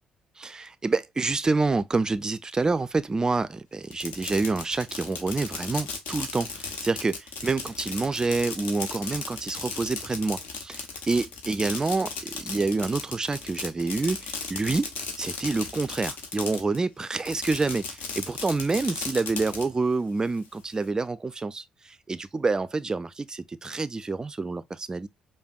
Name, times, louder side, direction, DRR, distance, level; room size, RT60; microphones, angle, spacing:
voice 1, 0.4-14.9 15.2-25.1, right 3 dB, 25° right, 0.3 m, -27 dB
Fireworks, 3.8-16.8 17.1-19.6, left 4 dB, 60° left, 0.7 m, -36 dB
4.9 x 2.2 x 2.3 m
figure-of-eight pair, 45°, 3 cm